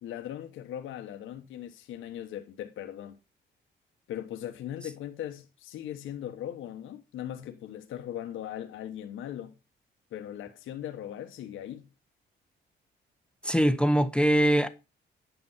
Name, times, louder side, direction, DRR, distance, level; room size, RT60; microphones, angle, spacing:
voice 1, 0.0-3.2 4.1-9.5 10.1-11.9, left 11 dB, 80° left, 1.3 m, -39 dB
voice 2, 13.4-14.7, right 1 dB, 5° left, 0.8 m, -22 dB
10.5 x 5.7 x 5.6 m
cardioid pair, 90°, 20 cm